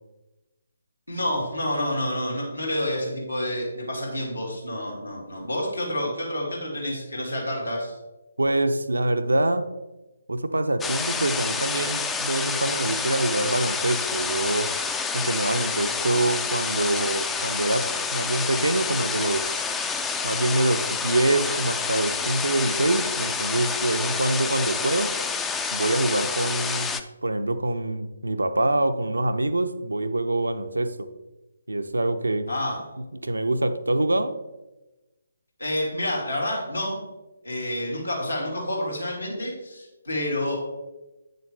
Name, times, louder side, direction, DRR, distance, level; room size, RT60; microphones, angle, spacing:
voice 1, 1.1-8.0 32.5-32.9 35.6-37.0 37.4-40.6, left 1 dB, 85° left, -3 dB, 3.0 m, -29 dB
voice 2, 8.4-9.6 10.3-14.7 15.1-19.6 20.2-25.1 25.7-31.1 31.7-32.5 33.2-34.3, right 2 dB, 75° right, 9 dB, 0.6 m, -25 dB
sound 1, 10.8-27.0, left 5 dB, 10° left, 0.4 m, -28 dB
8.5 x 6.7 x 3.3 m, 1.0 s
figure-of-eight pair, 140°, 0 cm